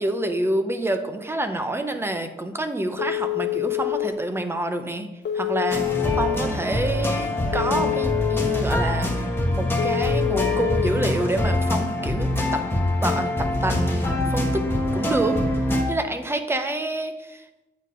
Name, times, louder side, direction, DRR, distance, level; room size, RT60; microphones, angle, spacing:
voice 1, 0.0-5.1 5.3-12.6 13.0-14.6 14.9-15.4 15.9-17.4, right 1 dB, 10° right, 7 dB, 0.6 m, -27 dB
Telephone, 3.0-4.1 5.2-6.3 7.5-8.6 9.8-10.9, left 15 dB, 65° left, 0.9 m, -26 dB
sound 1, 5.7-15.8, left 1 dB, 10° left, 1.2 m, -24 dB
8.3 x 4.5 x 4.9 m, 1.0 s
wide cardioid pair, 160°, 19 cm